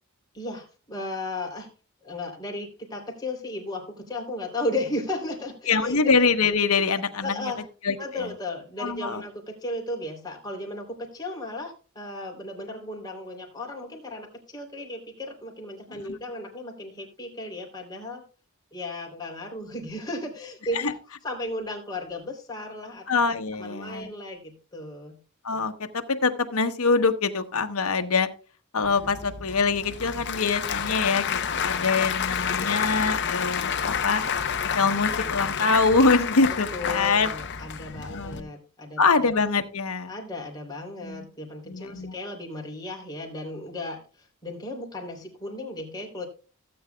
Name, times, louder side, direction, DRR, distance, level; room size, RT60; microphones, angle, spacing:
voice 1, 0.3-1.7 2.0-6.0 7.2-7.7 8.0-18.2 18.7-23.1 23.5-25.2 31.5-31.9 36.7-39.0 40.1-44.0 44.4-46.3, left 1 dB, 20° left, 0 dB, 3.1 m, -35 dB
voice 2, 5.7-7.5 7.8-8.3 8.8-9.2 15.9-16.0 20.7-20.9 23.1-24.1 25.4-28.3 28.7-34.2 34.7-37.3 38.0-38.5 39.0-40.1 41.0-41.3 41.7-42.1, left 4 dB, 85° left, 7 dB, 1.0 m, -24 dB
Applause / Crowd, 28.8-38.4, left 7 dB, 55° left, 0.7 m, -29 dB
16.5 x 8.7 x 2.3 m, 0.35 s
head